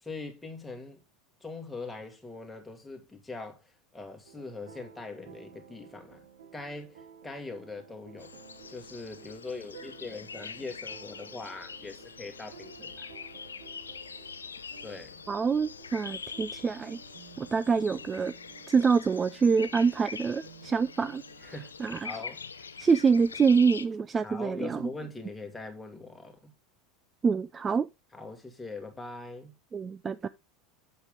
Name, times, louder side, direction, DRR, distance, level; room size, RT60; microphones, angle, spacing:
voice 1, 0.0-1.0 1.4-6.2 6.5-8.3 8.7-13.1 14.8-15.2 21.4-22.5 24.2-26.5 28.1-29.5, left 3 dB, 10° left, 2.3 m, -42 dB
sound 1, 4.2-21.7, right 8 dB, 65° right, 1.7 m, -54 dB
sound 2, 8.2-23.9, left 5 dB, 80° left, 0.6 m, -44 dB
voice 2, 15.3-17.0 17.4-18.3 18.7-21.5 21.8-22.1 22.8-24.8 27.2-27.9 29.7-30.3, right 5 dB, 25° right, 0.4 m, -26 dB
8.0 x 6.8 x 3.7 m
figure-of-eight pair, 80°, 0 cm